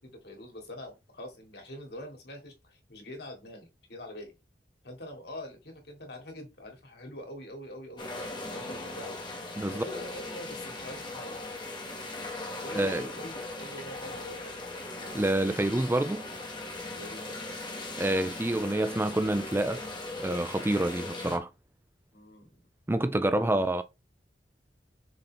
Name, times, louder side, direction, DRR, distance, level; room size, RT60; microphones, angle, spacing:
voice 1, 0.0-4.3 4.8-9.2 9.7-11.4 12.6-14.6 16.9-17.4 22.1-22.5 23.2-23.6, left 1 dB, 65° left, 2.8 m, -44 dB
sound 1, 8.0-21.4, left 2 dB, 25° left, 1.5 m, -39 dB
voice 2, 12.7-13.1 15.1-16.3 18.0-19.8 20.2-21.5 22.9-23.8, right 1 dB, 15° right, 0.4 m, -27 dB
6.4 x 4.3 x 4.3 m
head